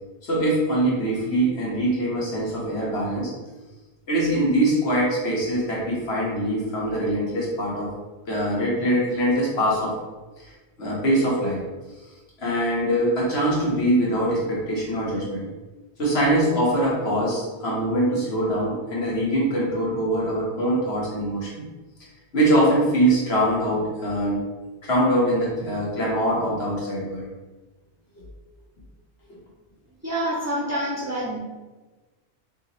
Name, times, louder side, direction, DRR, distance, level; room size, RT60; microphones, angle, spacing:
voice 1, 0.2-3.3 4.1-7.9 8.3-9.9 10.4-10.5 10.8-11.6 12.4-15.5 16.0-21.6 22.3-24.4 24.8-27.2, right 1 dB, 65° left, -5 dB, 1.3 m, -23 dB
voice 2, 30.0-31.4, equal, 15° right, -9 dB, 1.3 m, -27 dB
3.9 x 3.5 x 2.9 m, 1.2 s
omnidirectional pair, 1.2 m